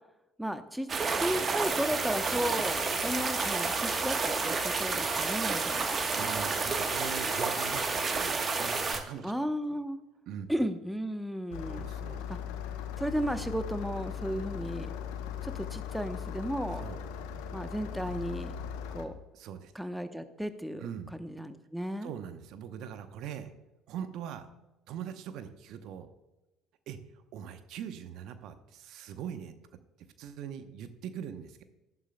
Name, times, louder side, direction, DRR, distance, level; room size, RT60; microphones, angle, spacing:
voice 1, 0.4-5.8 9.2-10.0 10.5-11.8 12.3-12.4 13.0-14.9 15.4-16.9 17.5-18.5 18.9-19.1 19.7-20.8 21.2-22.1, equal, 5° right, 9 dB, 0.9 m, -34 dB
sound 1, 0.9-9.0, right 4 dB, 40° right, 1.2 m, -30 dB
sound 2, 1.6-8.9, left 2 dB, 15° left, 3.1 m, -40 dB
voice 2, 6.1-9.3 9.7-9.8 10.3-10.5 11.7-12.3 16.8-17.0 19.3-19.7 20.8-21.1 22.0-23.5 23.9-24.5 24.9-26.1 26.9-31.6, right 8 dB, 60° right, 10 dB, 0.8 m, -42 dB
Engine starting, 11.5-19.1, left 8 dB, 70° left, 0.8 m, -38 dB
13.0 x 11.0 x 2.2 m, 1.0 s
hypercardioid pair, 55°, 0 cm